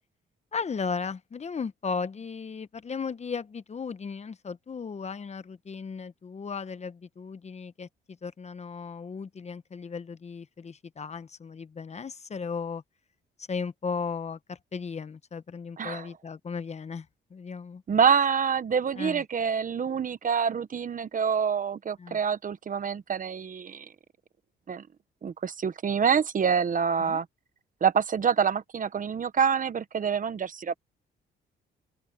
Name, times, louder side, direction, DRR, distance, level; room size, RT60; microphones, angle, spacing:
voice 1, 0.5-7.9 8.2-12.8 13.5-17.1 17.3-17.8 19.0-19.2 22.0-22.2 27.0-27.2, left 5 dB, 35° left, 0.9 m, -36 dB
voice 2, 15.8-16.1 17.9-23.8 24.7-24.8 25.2-27.3 27.8-30.7, right 7 dB, 40° right, 1.1 m, -26 dB
open air
cardioid pair, 90°, 20 cm